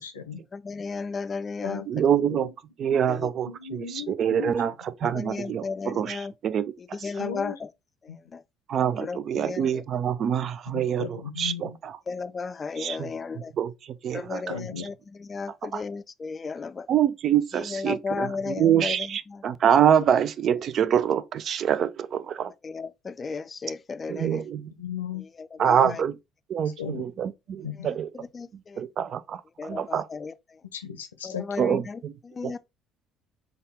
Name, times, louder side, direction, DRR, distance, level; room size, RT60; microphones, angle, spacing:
voice 1, 0.0-0.4 1.6-2.6 3.5-4.8 7.2-7.6 8.1-8.2 10.7-11.8 14.5-14.9 24.8-25.2 25.8-26.0 26.8-27.0 27.6-27.9 30.7-31.5, left 7 dB, 85° left, 0.6 m, -36 dB
voice 2, 0.5-2.0 3.1-3.3 5.1-6.3 6.8-7.7 8.0-8.4 9.0-9.8 10.2-10.3 12.1-13.5 14.1-16.9 17.5-19.4 22.6-24.5 25.4-26.0 28.1-28.8 29.6-30.6 31.2-32.6, left 4 dB, 35° left, 0.4 m, -34 dB
voice 3, 1.9-2.5 2.8-3.8 4.2-4.7 5.0-6.2 6.4-6.7 8.7-11.0 11.4-11.5 12.8-13.1 13.6-13.7 14.0-14.4 16.9-22.5 24.1-24.7 25.6-26.1 26.5-28.1 28.8-30.1 31.6-32.1 32.4-32.6, right 9 dB, 50° right, 0.3 m, -25 dB
3.9 x 2.3 x 3.4 m
hypercardioid pair, 55°, 0 cm